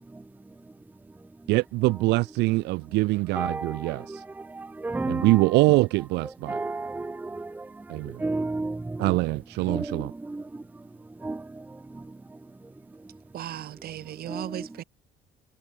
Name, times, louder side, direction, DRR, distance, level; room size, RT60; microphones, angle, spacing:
voice 1, 1.5-4.2 5.1-6.6 7.9-8.2 9.0-10.1, right 21 dB, 85° right, 0.5 m, -24 dB
voice 2, 3.4-3.9 4.6-5.4 6.5-7.5 8.2-9.1 9.7-10.0 10.3-10.4 11.2-11.4 14.3-14.7, right 3 dB, 10° right, 0.6 m, -31 dB
voice 3, 13.3-14.8, right 12 dB, 65° right, 3.1 m, -36 dB
cardioid pair, 110°, 17 cm